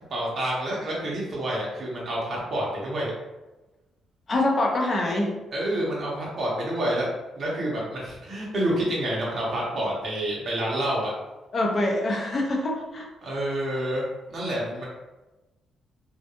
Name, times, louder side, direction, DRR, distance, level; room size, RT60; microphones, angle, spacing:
voice 1, 0.1-3.1 5.5-7.1 7.3-11.1 13.2-14.0 14.3-14.9, right 1 dB, 40° right, -5 dB, 0.7 m, -28 dB
voice 2, 4.3-5.3 11.5-13.1, left 1 dB, 30° left, -1 dB, 0.5 m, -25 dB
2.3 x 2.1 x 2.9 m, 1.1 s
cardioid pair, 150°, 0 cm